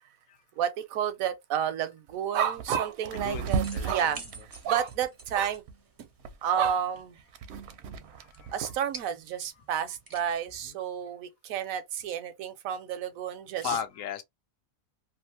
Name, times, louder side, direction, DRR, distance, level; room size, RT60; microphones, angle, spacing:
voice 1, 0.6-4.2 4.6-5.6 6.4-7.2 8.5-13.8, right 9 dB, 85° right, 1.1 m, -30 dB
sound 1, 2.1-2.2 2.5-2.7 3.0-5.7 6.2-8.8, right 5 dB, 65° right, 0.7 m, -35 dB
sound 2, 3.5-10.7, right 3 dB, 30° right, 0.4 m, -50 dB
voice 2, 3.7-4.1 8.2-8.5 13.6-14.2, left 8 dB, 75° left, 0.9 m, -35 dB
2.8 x 2.4 x 2.7 m
omnidirectional pair, 1.4 m